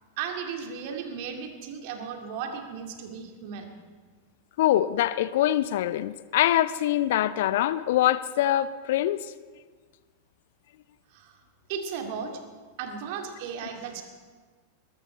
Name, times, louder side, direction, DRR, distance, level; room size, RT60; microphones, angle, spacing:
voice 1, 0.2-3.7 11.1-11.4 11.7-12.4 12.8-14.0, right 6 dB, 50° right, 2.2 m, -35 dB
voice 2, 4.6-9.3, left 13 dB, 55° left, 0.4 m, -24 dB
21.5 x 13.5 x 4.4 m
figure-of-eight pair, 90°, 0 cm